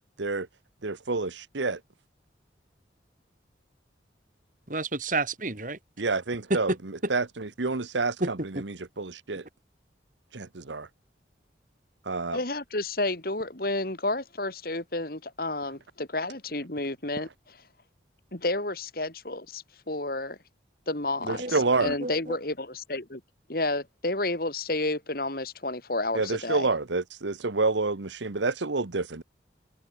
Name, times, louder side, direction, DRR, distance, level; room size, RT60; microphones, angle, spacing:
voice 1, 0.8-1.8 6.0-9.4 10.3-10.9 12.1-12.4 21.2-21.9 26.1-29.2, right 3 dB, 80° right, 1.2 m, -28 dB
voice 2, 4.7-5.8 6.5-6.8 8.2-8.6 21.4-21.5 21.8-22.4, right 2 dB, 45° right, 3.0 m, -30 dB
voice 3, 12.3-17.3 18.3-20.4 20.9-23.2 23.5-26.7, left 2 dB, 55° left, 3.1 m, -31 dB
head